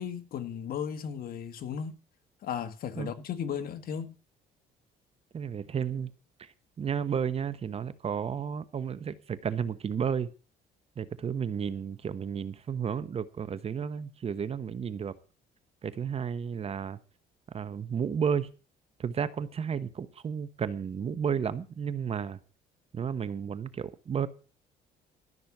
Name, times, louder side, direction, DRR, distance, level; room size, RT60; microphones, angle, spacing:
voice 1, 0.0-1.9 2.4-4.1, left 8 dB, 60° left, 1.7 m, -35 dB
voice 2, 5.3-6.1 6.4-10.3 11.0-15.1 15.8-17.0 17.5-18.5 19.0-22.4 22.9-24.3, right 7 dB, 35° right, 1.0 m, -32 dB
13.5 x 6.3 x 7.2 m
cardioid pair, 110°, 17 cm